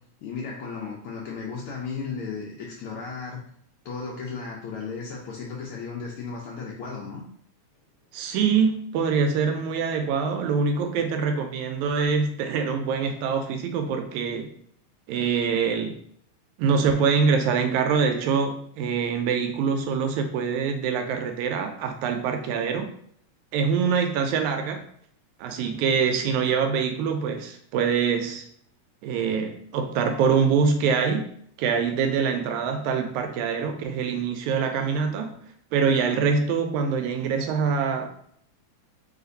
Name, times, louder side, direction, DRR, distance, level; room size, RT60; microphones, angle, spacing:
voice 1, 0.2-3.4 3.8-7.2, left 5 dB, 90° left, -3 dB, 1.2 m, -35 dB
voice 2, 8.1-14.5 15.1-16.0 16.6-22.9 23.5-24.8 25.4-28.5 29.0-31.3 31.6-35.4 35.7-38.1, right 6 dB, 85° right, 6 dB, 1.9 m, -24 dB
4.6 x 2.4 x 3.9 m, 0.66 s
omnidirectional pair, 3.4 m